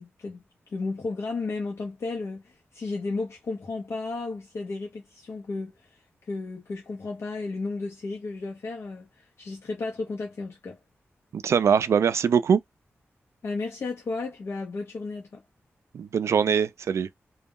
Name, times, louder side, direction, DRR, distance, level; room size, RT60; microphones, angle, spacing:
voice 1, 0.0-6.0 6.3-10.8 13.4-15.4, left 3 dB, 65° left, 0.7 m, -33 dB
voice 2, 11.3-12.6 15.9-17.1, right 7 dB, 80° right, 0.3 m, -22 dB
2.2 x 2.0 x 3.6 m
wide cardioid pair, 140°, 5 cm